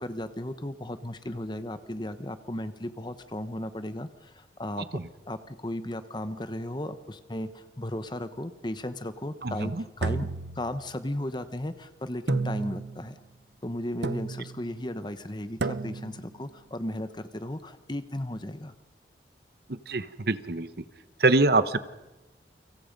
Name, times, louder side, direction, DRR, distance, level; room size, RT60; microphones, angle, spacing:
voice 1, 0.0-13.2 13.6-18.7, left 1 dB, 25° left, 11 dB, 1.1 m, -35 dB
voice 2, 9.4-9.8 19.7-20.7 21.2-21.8, right 2 dB, 60° right, 13 dB, 1.0 m, -24 dB
sound 1, 10.0-11.2 12.3-13.1 14.0-14.6 15.6-16.3, right 3 dB, 80° right, 0.8 m, -32 dB
29.5 x 25.5 x 5.3 m, 1.0 s
head